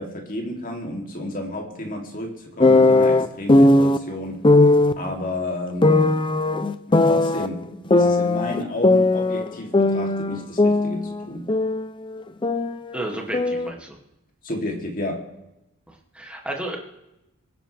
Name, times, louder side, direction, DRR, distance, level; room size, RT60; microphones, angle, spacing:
voice 1, 0.0-4.4 5.0-6.1 6.9-7.6 7.9-11.5 14.4-15.2, left 1 dB, 40° left, 1 dB, 2.9 m, -31 dB
sound 1, 2.6-4.0 4.4-5.0 5.8-7.5 7.9-9.5 9.7-11.9 12.2-13.7, left 2 dB, 20° left, 0.6 m, -18 dB
voice 2, 12.9-14.0 15.9-16.8, right 1 dB, 5° right, 0 dB, 2.3 m, -32 dB
24.5 x 10.0 x 3.4 m, 0.90 s
head